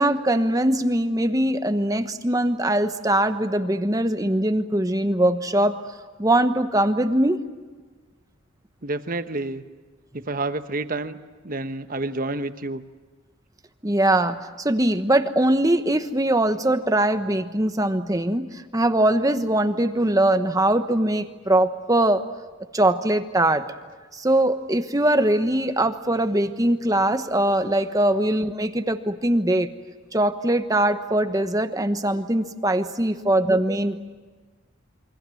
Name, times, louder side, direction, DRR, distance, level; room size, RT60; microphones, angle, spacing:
voice 1, 0.0-5.8 6.2-7.4 13.8-22.2 22.7-23.6 24.1-29.7 30.1-34.0, right 1 dB, 15° right, 9 dB, 1.1 m, -21 dB
voice 2, 8.8-9.6 10.2-11.2 11.4-12.8, right 2 dB, 40° right, 10 dB, 1.1 m, -29 dB
28.5 x 24.5 x 7.8 m, 1.4 s
head